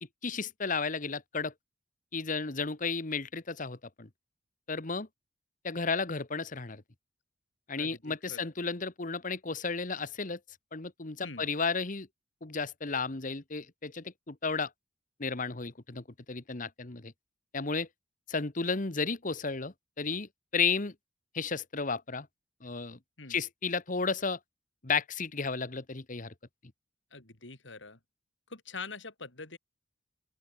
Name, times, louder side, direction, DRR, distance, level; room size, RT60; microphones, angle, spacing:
voice 1, 0.2-1.5 2.1-4.1 4.7-5.1 5.6-6.8 7.7-10.4 10.7-12.1 12.4-14.7 15.2-17.1 17.5-17.9 18.3-20.9 21.3-22.3 22.6-23.0 23.3-24.4 24.8-26.3, left 4 dB, 45° left, 1.4 m, -33 dB
voice 2, 7.8-8.4 11.2-11.5 23.2-23.4 27.1-28.0 28.5-29.6, left 4 dB, 80° left, 3.5 m, -44 dB
open air
head